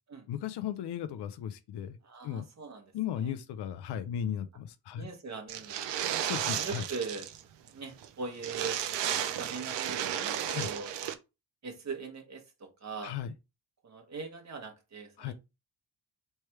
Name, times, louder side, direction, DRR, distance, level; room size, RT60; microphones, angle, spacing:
voice 1, 0.3-2.0 2.2-2.5 2.9-5.1 6.2-6.8 10.5-10.7 13.0-13.3 15.2-15.3, left 9 dB, 70° left, 0.6 m, -36 dB
voice 2, 2.0-3.3 4.9-6.3 6.5-8.8 9.4-10.9 11.6-13.1 13.8-15.3, right 4 dB, 40° right, 1.2 m, -41 dB
sound 1, 5.5-7.4 7.7-7.8 8.0-8.1 8.4-11.1, right 10 dB, 80° right, 0.7 m, -33 dB
3.4 x 3.2 x 4.4 m
cardioid pair, 130°, 42 cm